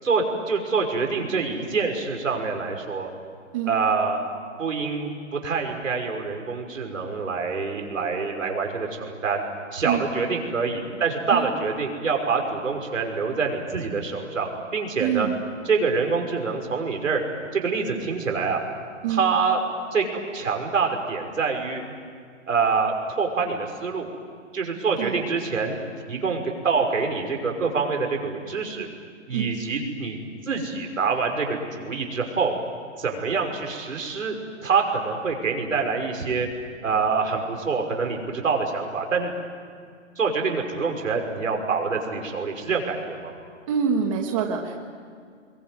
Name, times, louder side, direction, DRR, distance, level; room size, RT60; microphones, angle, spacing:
voice 1, 0.0-3.1 3.7-4.2 4.6-9.4 9.7-15.3 15.7-17.2 17.5-18.6 19.1-19.6 19.9-20.1 20.3-21.8 22.5-24.1 24.5-25.8 26.1-28.9 29.3-30.2 30.5-32.5 33.0-34.3 34.6-36.5 36.8-39.3 40.2-43.3, right 5 dB, 85° right, 3 dB, 6.0 m, -26 dB
voice 2, 15.0-15.4 19.0-19.2 25.0-25.2 29.3-29.5 43.7-44.8, right 7 dB, 25° right, 2 dB, 1.6 m, -25 dB
27.0 x 22.0 x 9.4 m, 2.1 s
hypercardioid pair, 165°, 38 cm